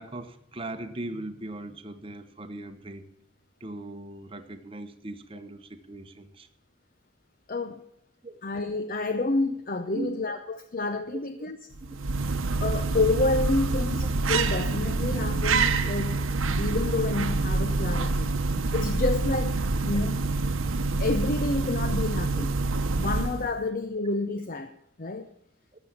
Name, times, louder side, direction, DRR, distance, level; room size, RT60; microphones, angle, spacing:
voice 1, 0.0-3.1 3.6-6.5 8.2-8.4 9.9-10.3 11.9-12.0 19.9-20.0 22.3-22.5, right 2 dB, 25° right, 7 dB, 0.9 m, -39 dB
voice 2, 7.5-7.8 8.4-11.6 12.6-16.2 16.6-20.2 21.0-22.5 23.0-24.7 25.0-25.3, left 3 dB, 45° left, 9 dB, 0.6 m, -29 dB
sound 1, 11.7-23.6, right 3 dB, 80° right, 1.0 m, -26 dB
12.5 x 7.1 x 8.6 m, 0.72 s
head